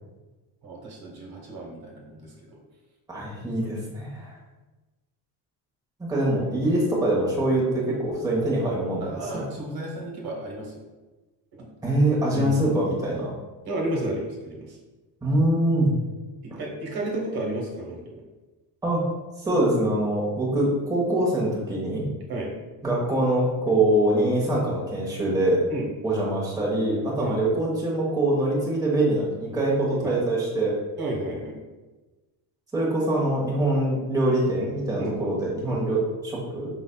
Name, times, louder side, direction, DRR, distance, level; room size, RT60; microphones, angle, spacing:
voice 1, 0.6-2.6 9.0-10.8 11.5-11.7 12.3-12.7 13.6-14.8 16.4-18.2 22.3-22.5 25.7-25.9 27.2-27.4 30.0-30.1 31.0-31.6 34.6-34.7 35.0-35.2 35.7-35.8, right 1 dB, 50° right, -2 dB, 1.2 m, -32 dB
voice 2, 3.1-4.3 6.1-9.4 11.8-13.3 15.2-15.9 18.8-19.0 19.4-22.1 22.8-25.6 26.0-30.8 32.7-36.7, right 1 dB, 10° right, -5 dB, 1.1 m, -24 dB
5.0 x 3.9 x 2.2 m, 1.2 s
cardioid pair, 115°, 46 cm